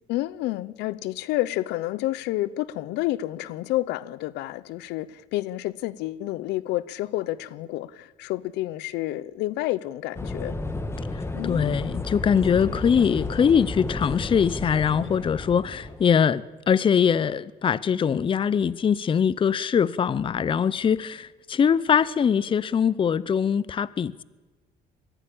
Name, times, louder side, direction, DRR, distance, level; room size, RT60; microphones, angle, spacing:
voice 1, 0.1-10.6 11.3-11.8, left 16 dB, 90° left, 0.8 m, -29 dB
sound 1, 10.1-16.1, left 2 dB, 15° left, 1.7 m, -32 dB
voice 2, 11.4-24.2, left 7 dB, 30° left, 0.6 m, -22 dB
21.5 x 15.0 x 8.7 m
cardioid pair, 110°, 17 cm